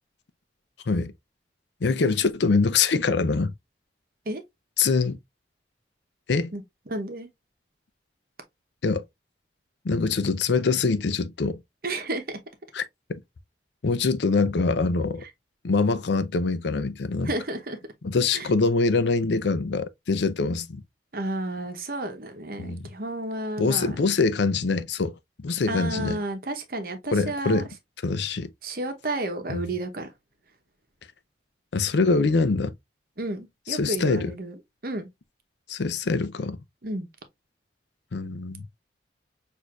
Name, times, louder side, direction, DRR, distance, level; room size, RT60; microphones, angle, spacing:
voice 1, 1.8-3.5 4.8-5.2 6.3-6.5 8.8-9.0 9.8-11.6 12.7-12.8 13.1-13.2 13.8-15.2 15.6-17.3 18.0-20.8 22.6-22.8 23.6-26.2 27.1-27.7 28.0-28.5 29.5-29.7 31.7-32.7 33.7-34.3 35.7-36.6 38.1-38.7, left 4 dB, 75° left, 0.5 m, -24 dB
voice 2, 6.5-7.3 11.8-12.4 15.2-15.3 17.2-17.8 18.3-18.5 21.1-24.1 25.7-27.6 28.6-30.1 33.2-34.5 34.8-35.1 36.8-37.1, right 2 dB, 55° right, 0.9 m, -32 dB
6.2 x 2.7 x 2.4 m
head